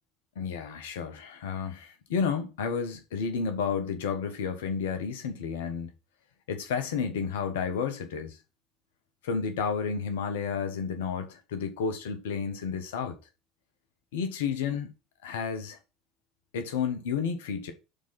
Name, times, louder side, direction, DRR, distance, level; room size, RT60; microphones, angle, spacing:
voice 1, 0.3-5.9 6.5-8.4 9.2-13.2 14.1-14.9 15.2-15.8 16.5-17.7, left 6 dB, 70° left, 1.4 m, -31 dB
6.9 x 4.0 x 5.9 m
figure-of-eight pair, 65°, 0 cm